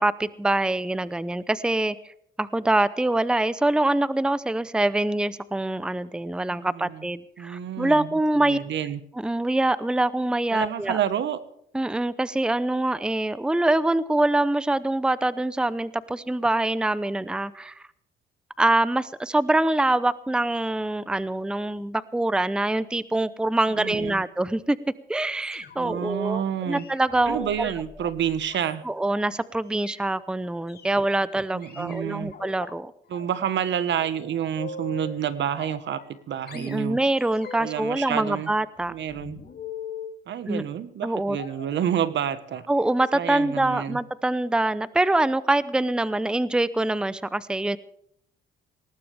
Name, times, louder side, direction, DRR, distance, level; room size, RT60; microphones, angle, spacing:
voice 1, 0.0-2.1 2.4-8.6 9.2-11.0 11.7-17.8 18.6-24.8 25.1-27.7 28.9-32.9 36.5-38.9 40.5-40.6 41.0-41.4 42.7-47.8, right 2 dB, 5° right, 16 dB, 0.7 m, -24 dB
voice 2, 6.5-7.0 7.4-8.1 8.4-9.0 10.5-11.4 23.8-24.2 25.8-26.8 27.3-28.8 31.5-32.3 33.1-37.0 37.6-38.5 38.9-39.4 40.3-42.7 43.1-44.0, right 9 dB, 65° right, 13 dB, 1.4 m, -29 dB
sound 1, 25.4-26.0 26.7-29.2 29.6-30.0 30.7-31.0 31.6-32.7 33.1-33.7 34.0-35.2 35.6-36.2 36.5-37.8 38.1-40.2 41.3-41.8 42.5-42.7 42.9-43.1 43.5-43.7 44.0-44.1, left 5 dB, 55° left, 2.7 m, -42 dB
19.5 x 18.0 x 3.5 m, 0.72 s
cardioid pair, 90°, 20 cm